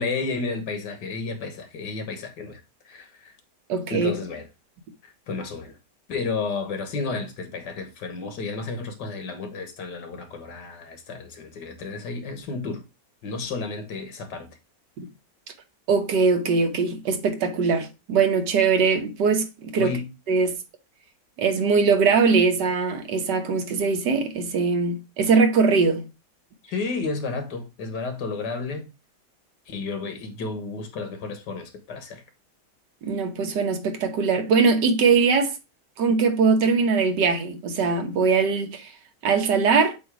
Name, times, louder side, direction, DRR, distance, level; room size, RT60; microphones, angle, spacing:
voice 1, 0.0-2.6 2.9-3.3 3.9-4.5 5.0-5.8 6.1-12.8 13.2-14.5 19.8-20.1 26.6-28.9 29.7-32.2, left 4 dB, 90° left, 1.9 m, -32 dB
voice 2, 3.7-4.1 15.0-15.1 15.9-19.9 20.3-20.5 21.4-26.0 33.0-35.5 36.0-38.9 39.2-40.0, right 5 dB, 85° right, 1.7 m, -21 dB
7.9 x 2.7 x 4.7 m
omnidirectional pair, 1.8 m